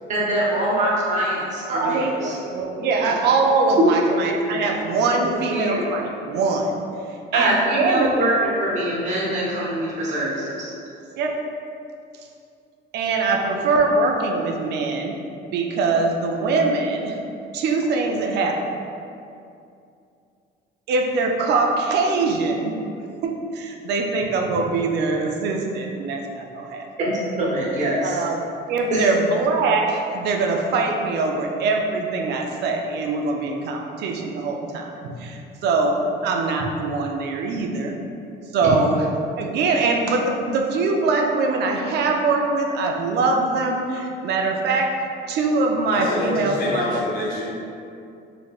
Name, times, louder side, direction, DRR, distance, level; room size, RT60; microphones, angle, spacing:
voice 1, 0.1-2.3 3.8-3.9 4.1-4.2 5.5-5.8 7.3-10.7 27.0-28.2 28.9-29.1, right 1 dB, 35° right, -5 dB, 0.9 m, -23 dB
voice 2, 1.7-6.8 7.3-8.4 11.2-11.5 12.9-15.2 15.5-17.2 17.5-18.7 20.9-22.8 23.2-26.9 28.0-28.4 28.7-38.0 38.5-39.0 39.4-47.0, right 3 dB, 60° right, 2 dB, 0.4 m, -23 dB
voice 3, 45.9-47.5, left 1 dB, 50° left, -6 dB, 1.0 m, -26 dB
4.1 x 3.1 x 2.3 m, 2.5 s
cardioid pair, 150°, 20 cm